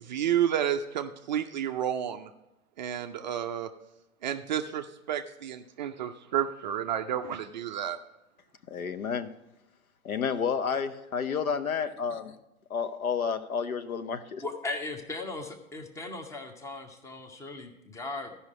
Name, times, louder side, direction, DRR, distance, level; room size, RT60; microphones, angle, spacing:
voice 1, 0.0-2.3 2.8-3.7 4.2-8.0, right 10 dB, 35° right, 7 dB, 0.4 m, -31 dB
voice 2, 8.7-9.3 10.0-12.3 12.7-14.4, left 6 dB, 75° left, 11 dB, 0.9 m, -30 dB
voice 3, 14.4-18.3, left 2 dB, 5° left, 6 dB, 0.7 m, -38 dB
13.5 x 5.5 x 4.8 m, 0.95 s
figure-of-eight pair, 105°, 43 cm